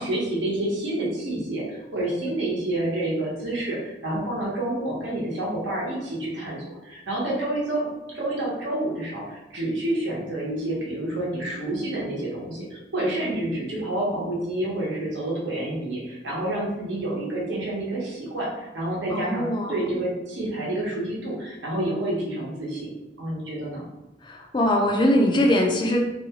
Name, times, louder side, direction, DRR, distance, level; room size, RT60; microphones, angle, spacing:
voice 1, 0.0-22.9 23.2-23.9, right 1 dB, 75° right, -4 dB, 0.9 m, -28 dB
voice 2, 19.1-20.0 24.2-26.0, left 1 dB, 25° left, 1 dB, 0.3 m, -22 dB
2.6 x 2.3 x 2.8 m, 0.99 s
head